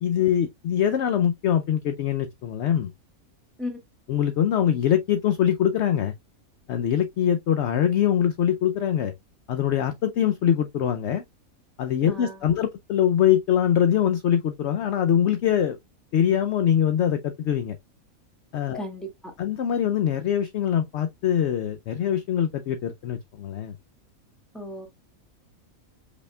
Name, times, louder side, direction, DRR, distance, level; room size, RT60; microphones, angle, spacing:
voice 1, 0.0-2.9 4.1-6.1 6.7-9.1 9.5-11.2 11.8-15.8 16.1-17.8 18.5-18.8 19.4-23.7, left 9 dB, 65° left, 0.7 m, -23 dB
voice 2, 12.1-12.4 18.7-19.1 24.5-24.9, left 1 dB, ahead, 1.8 m, -34 dB
5.5 x 4.2 x 2.2 m
omnidirectional pair, 1.5 m